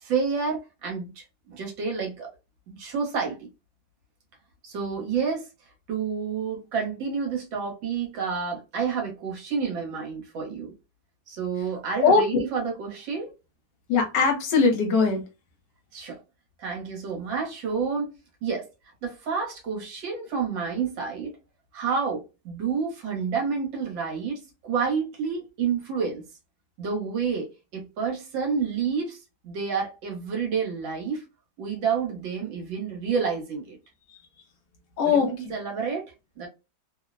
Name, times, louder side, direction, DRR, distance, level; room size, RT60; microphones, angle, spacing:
voice 1, 0.0-2.3 2.8-3.5 4.6-5.5 5.9-10.7 11.3-13.3 15.9-16.2 16.6-18.1 18.4-18.7 19.0-21.4 21.7-26.2 26.8-27.5 27.7-29.2 29.4-31.2 31.6-33.8 35.1-36.5, right 6 dB, 75° right, 1.7 m, -29 dB
voice 2, 12.0-12.4 13.9-15.2 35.0-35.5, left 5 dB, 70° left, 1.3 m, -21 dB
3.5 x 2.1 x 2.5 m
omnidirectional pair, 2.1 m